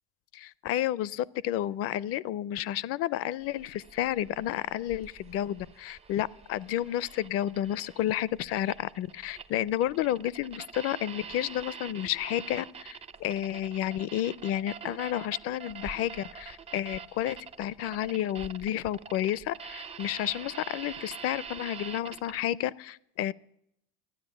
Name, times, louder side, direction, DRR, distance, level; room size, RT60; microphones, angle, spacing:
voice 1, 0.3-23.3, left 12 dB, 45° left, 21 dB, 0.5 m, -31 dB
sound 1, 3.4-22.4, right 6 dB, 20° right, 0.4 m, -45 dB
13.5 x 9.7 x 7.0 m, 0.76 s
hypercardioid pair, 95°, 34 cm